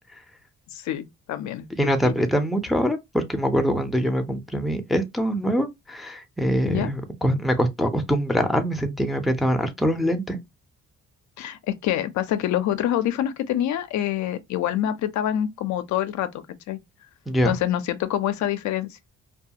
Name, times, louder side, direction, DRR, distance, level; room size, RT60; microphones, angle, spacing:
voice 1, 0.7-1.7 2.0-2.2 6.6-6.9 11.4-16.3 16.7-16.8 17.4-19.0, left 11 dB, 70° left, 0.4 m, -26 dB
voice 2, 1.8-10.4 17.3-17.6, equal, ahead, 0.5 m, -24 dB
2.3 x 2.3 x 2.7 m
cardioid pair, 90°, 30 cm